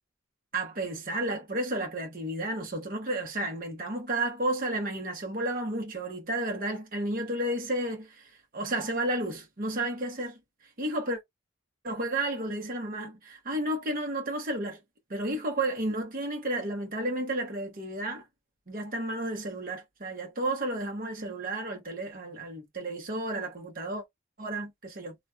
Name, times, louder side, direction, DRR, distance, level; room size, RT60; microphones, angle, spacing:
voice 1, 0.5-10.4 10.8-11.2 11.8-14.8 15.1-18.2 18.7-24.0 24.4-25.2, right 1 dB, 45° right, 0.9 m, -32 dB
2.9 x 2.3 x 2.2 m
head